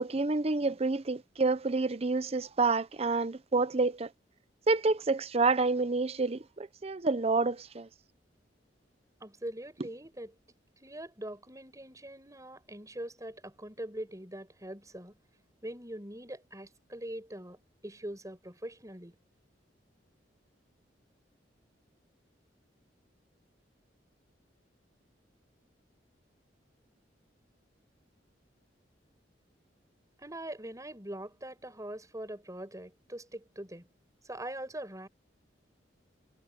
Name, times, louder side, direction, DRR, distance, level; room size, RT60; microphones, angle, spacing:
voice 1, 0.0-4.1 4.7-7.9, right 3 dB, 35° right, 0.7 m, -28 dB
voice 2, 9.2-10.3 10.8-15.2 15.6-19.2 30.2-33.9 34.2-35.1, right 1 dB, 20° right, 6.6 m, -42 dB
head